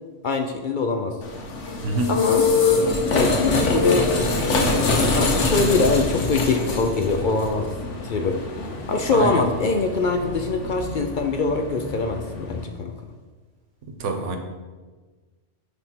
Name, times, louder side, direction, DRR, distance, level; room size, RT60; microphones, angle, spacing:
voice 1, 0.2-1.2 2.1-2.4 3.1-4.2 5.1-7.7 8.0-8.4 8.9-12.9, left 3 dB, 55° left, 5 dB, 0.6 m, -23 dB
sound 1, 1.2-12.6, left 3 dB, 90° left, 1.3 m, -24 dB
voice 2, 9.1-9.5 13.8-14.4, right 2 dB, 90° right, 5 dB, 1.2 m, -26 dB
9.8 x 3.5 x 4.4 m, 1.4 s
omnidirectional pair, 1.2 m